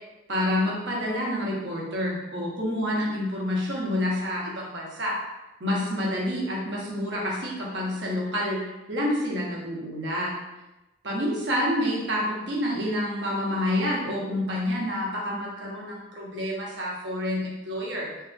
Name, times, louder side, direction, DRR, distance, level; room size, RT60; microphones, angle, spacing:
voice 1, 0.3-5.1 5.6-10.3 11.0-18.1, left 1 dB, 65° right, -4 dB, 0.8 m, -28 dB
2.7 x 2.4 x 2.4 m, 1.0 s
head